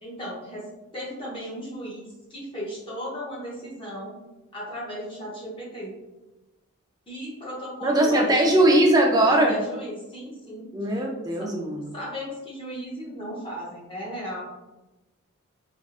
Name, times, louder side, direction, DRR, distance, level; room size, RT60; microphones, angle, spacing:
voice 1, 0.0-0.6 0.9-4.2 4.5-5.9 7.1-8.8 9.2-10.9 11.4-11.5 11.9-14.4, equal, 25° left, -6 dB, 0.7 m, -36 dB
voice 2, 7.8-9.6 10.7-11.9, right 1 dB, 15° right, 0 dB, 0.4 m, -20 dB
3.4 x 2.4 x 2.4 m, 1.1 s
head